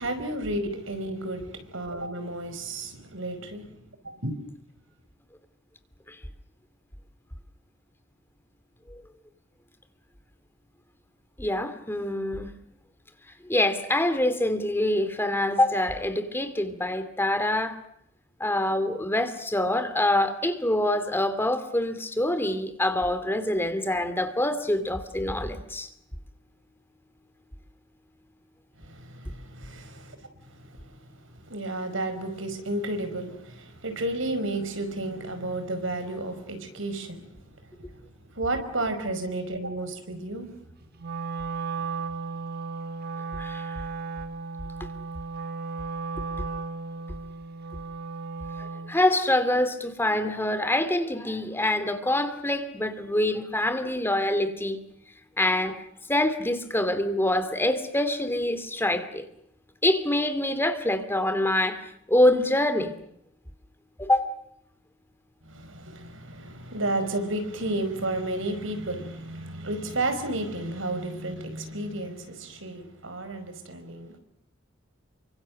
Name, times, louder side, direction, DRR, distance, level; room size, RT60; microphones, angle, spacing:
voice 1, 0.0-4.3 28.8-31.0 31.3-37.4 37.8-37.9 38.4-40.5 65.4-74.2, right 2 dB, 75° right, 5.2 m, -32 dB
voice 2, 11.4-12.5 13.4-17.8 18.4-25.9 43.3-43.7 44.8-44.9 46.4-46.5 48.6-54.8 55.4-55.8 56.1-59.3 59.8-62.9 64.0-64.3, left 1 dB, 10° left, 2.4 m, -25 dB
Wind instrument woodwind instrument, 41.0-49.0, right 4 dB, 55° right, 1.3 m, -35 dB
29.5 x 25.0 x 6.5 m
head